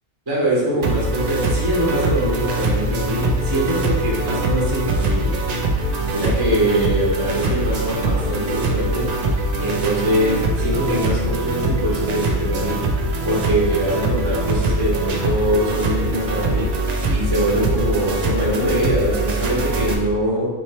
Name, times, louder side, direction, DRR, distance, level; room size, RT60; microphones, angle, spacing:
voice 1, 0.3-5.4 6.1-9.1 9.6-12.8 13.2-16.7 17.1-20.5, right 1 dB, 20° right, -6 dB, 0.9 m, -22 dB
sound 1, 0.8-20.0, right 2 dB, 70° right, 0.3 m, -22 dB
3.1 x 2.9 x 4.2 m, 1.2 s
omnidirectional pair, 1.2 m